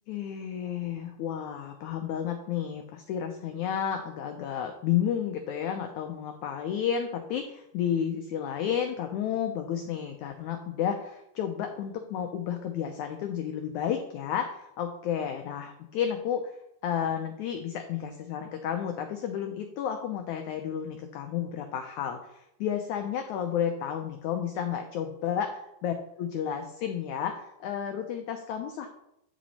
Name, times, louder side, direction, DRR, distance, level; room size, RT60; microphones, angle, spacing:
voice 1, 0.1-16.5 16.8-28.9, left 9 dB, 90° left, 5 dB, 1.6 m, -32 dB
9.6 x 6.1 x 4.2 m, 0.80 s
omnidirectional pair, 4.2 m